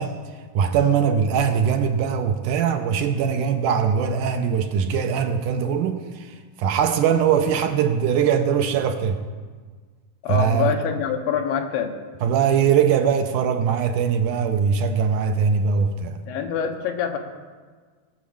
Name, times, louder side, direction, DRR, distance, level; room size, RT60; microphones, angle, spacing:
voice 1, 0.0-9.2 10.3-10.8 12.2-16.2, right 7 dB, 80° right, 6 dB, 2.0 m, -21 dB
voice 2, 10.2-11.9 16.3-17.2, left 7 dB, 90° left, 5 dB, 2.8 m, -25 dB
18.0 x 6.1 x 7.1 m, 1.5 s
omnidirectional pair, 4.0 m